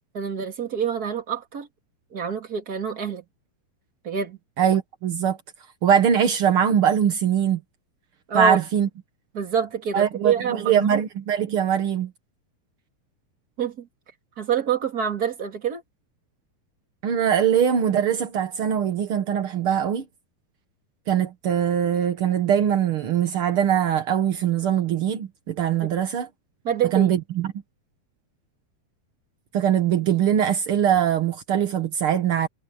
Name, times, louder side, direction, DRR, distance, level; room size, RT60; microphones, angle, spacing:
voice 1, 0.1-1.7 2.1-3.2 4.0-4.4 8.3-8.6 9.3-11.0 13.6-13.9 14.4-15.8 25.8-25.9 26.6-27.1, right 7 dB, 30° right, 2.1 m, -26 dB
voice 2, 4.6-5.4 5.8-7.6 8.3-8.9 9.9-12.1 17.0-20.0 21.1-26.3 26.9-27.5 29.5-32.5, right 9 dB, 70° right, 1.3 m, -22 dB
omnidirectional pair, 4.4 m